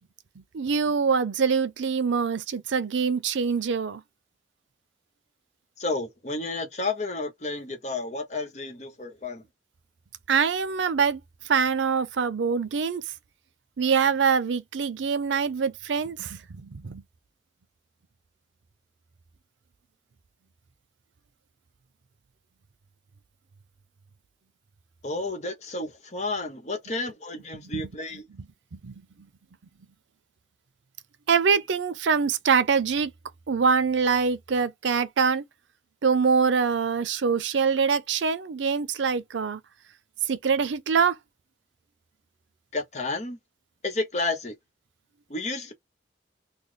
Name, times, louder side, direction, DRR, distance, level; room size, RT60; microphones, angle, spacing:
voice 1, 0.4-4.0 10.3-13.0 13.8-17.0 27.7-27.9 28.4-28.5 28.7-29.0 31.3-33.1 33.5-35.4 36.0-39.6 40.3-41.2, right 5 dB, 90° right, 0.5 m, -24 dB
voice 2, 5.8-9.4 25.0-28.2 42.7-43.4 43.8-44.5 45.3-45.7, left 3 dB, 40° left, 1.0 m, -31 dB
3.3 x 2.3 x 3.7 m
head